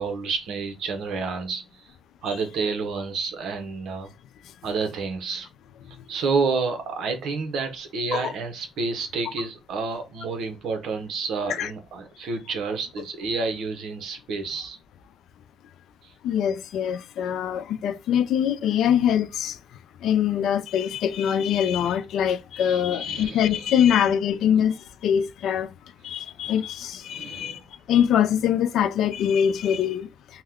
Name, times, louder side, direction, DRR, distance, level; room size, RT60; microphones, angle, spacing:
voice 1, 0.0-1.8 2.2-4.1 4.6-5.5 6.1-14.8 16.0-16.1 21.8-21.9 22.6-23.6 27.1-27.6, right 4 dB, 80° right, 0.8 m, -29 dB
voice 2, 16.2-19.6 20.0-25.7 26.0-27.6 27.9-30.4, left 9 dB, 80° left, 0.4 m, -23 dB
2.8 x 2.2 x 3.5 m
cardioid pair, 90°, 0 cm